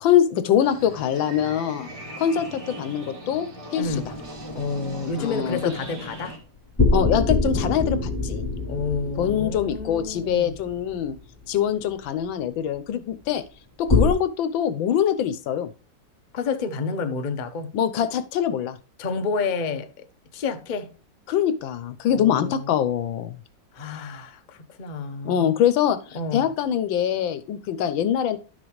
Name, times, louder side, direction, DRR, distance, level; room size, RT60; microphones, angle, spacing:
voice 1, 0.0-1.9 2.2-3.9 5.2-5.6 6.9-8.5 9.2-11.1 11.5-13.4 13.8-15.7 17.7-18.8 21.3-23.4 25.2-26.0 26.3-28.4, left 9 dB, 85° left, 1.5 m, -23 dB
sound 1, 0.6-6.4, equal, 60° right, 3.5 m, -38 dB
voice 2, 3.7-4.1 4.5-6.4 8.6-10.6 16.3-17.8 19.0-19.9 20.3-20.9 22.1-22.8 23.7-25.6 26.1-26.5, left 4 dB, 60° left, 0.4 m, -29 dB
sound 2, 3.8-4.8 6.8-11.2 13.9-14.1, left 3 dB, 10° left, 2.9 m, -24 dB
11.5 x 6.1 x 3.1 m
omnidirectional pair, 2.1 m